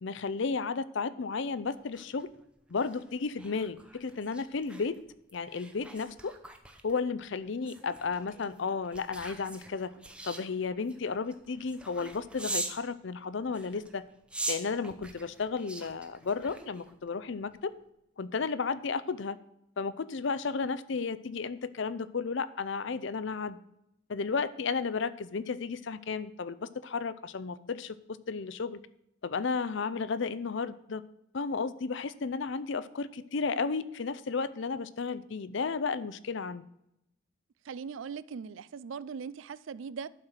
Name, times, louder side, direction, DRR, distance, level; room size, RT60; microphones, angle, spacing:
voice 1, 0.0-2.3 2.7-5.0 5.3-6.3 6.8-9.9 10.2-14.0 14.5-17.7 18.2-19.4 19.8-23.6 24.1-28.8 29.2-31.0 31.3-36.6, left 4 dB, 60° left, 0.5 m, -33 dB
sound 1, 1.7-12.8 13.5-17.1 17.5-17.7, right 2 dB, 5° right, 0.7 m, -43 dB
voice 2, 37.6-40.1, right 6 dB, 65° right, 0.4 m, -40 dB
11.5 x 4.6 x 6.5 m
head